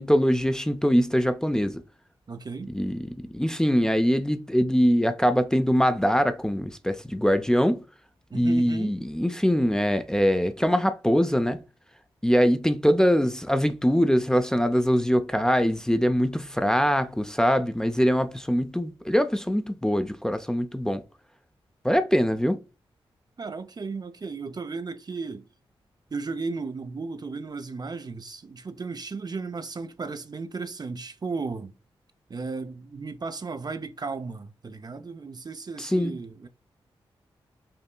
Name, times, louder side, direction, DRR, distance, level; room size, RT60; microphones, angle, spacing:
voice 1, 0.0-1.8 2.7-7.8 8.3-11.6 12.2-21.0 21.8-22.6 35.8-36.1, equal, 5° left, 0.5 m, -23 dB
voice 2, 2.3-2.7 8.3-9.0 23.4-25.5 26.1-31.7 32.3-36.5, right 4 dB, 40° right, 0.5 m, -35 dB
5.5 x 2.7 x 2.2 m
cardioid pair, 50°, 10 cm